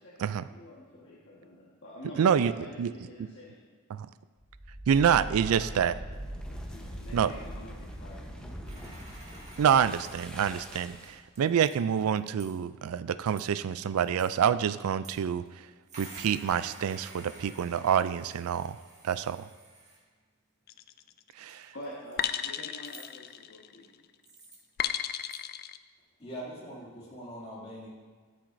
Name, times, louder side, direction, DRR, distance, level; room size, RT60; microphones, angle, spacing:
voice 1, 0.0-3.6 5.3-6.1 6.5-8.9 21.7-24.0, left 1 dB, 60° left, -6 dB, 1.4 m, -47 dB
voice 2, 2.2-2.5 2.8-2.9 3.2-3.3 3.9-4.1 4.9-5.9 7.1-7.3 9.6-15.4 16.0-18.8 19.0-19.5 21.4-21.7, right 8 dB, 75° right, 14 dB, 0.3 m, -27 dB
sound 1, 4.4-11.3, equal, 5° left, 0.9 m, -42 dB
sound 2, 8.7-10.5 11.0-11.8 12.2-12.6 13.3-13.5 14.0-14.4 15.0-15.1 15.5-15.6 15.9-20.0 20.7-20.8 21.5-22.3 22.8-23.4 23.8-23.9 24.2-24.8 25.2-25.4, right 2 dB, 35° right, 1.7 m, -51 dB
sound 3, 20.7-21.1 22.2-23.9 24.8-25.8, left 10 dB, 45° left, 0.3 m, -34 dB
voice 3, 26.2-27.9, equal, 30° left, -6 dB, 2.5 m, -42 dB
13.0 x 7.5 x 2.6 m, 1.5 s
head